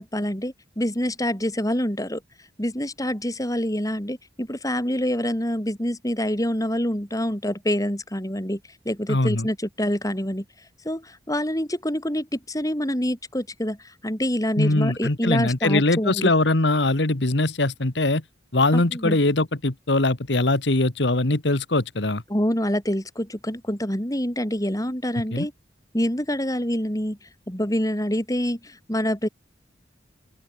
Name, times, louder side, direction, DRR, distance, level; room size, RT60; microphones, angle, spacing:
voice 1, 0.0-2.2 2.6-8.6 8.9-10.5 10.9-13.8 14.0-16.3 18.7-19.2 22.3-25.5 25.9-27.2 27.5-29.3, equal, 20° left, 6.9 m, -26 dB
voice 2, 9.1-9.5 14.6-18.2 18.5-22.2 25.3-25.5, left 2 dB, 65° left, 1.8 m, -22 dB
open air
head